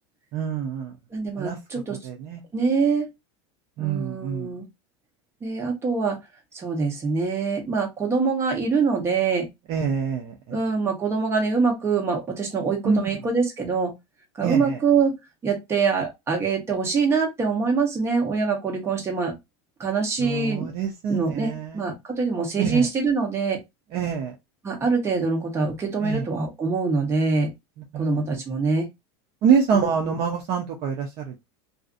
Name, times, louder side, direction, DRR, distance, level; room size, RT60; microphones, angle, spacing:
voice 1, 0.3-0.9 1.4-1.6 1.9-2.4 3.8-4.5 9.7-10.6 12.8-13.0 14.4-14.8 20.2-21.9 22.6-22.9 23.9-24.3 26.0-26.3 27.9-28.2 29.4-31.3, right 6 dB, 40° right, 0.5 m, -25 dB
voice 2, 1.1-2.0 2.5-3.1 3.8-4.6 5.4-6.2 6.5-9.5 10.5-13.9 14.4-15.1 15.4-19.3 19.8-20.7 21.1-23.6 24.6-27.5 27.9-28.9 29.7-29.9, right 4 dB, 20° right, 0.9 m, -24 dB
2.5 x 2.4 x 2.4 m
supercardioid pair, 145°, 15 cm